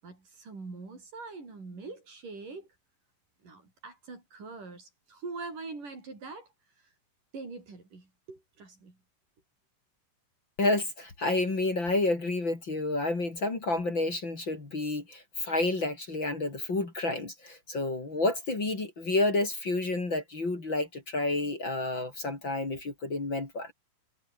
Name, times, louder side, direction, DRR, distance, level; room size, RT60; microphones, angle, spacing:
voice 1, 0.0-2.7 3.4-6.5 7.3-9.0, right 3 dB, 65° right, 8.9 m, -43 dB
voice 2, 10.6-23.7, left 2 dB, 35° left, 4.7 m, -30 dB
omnidirectional pair, 4.0 m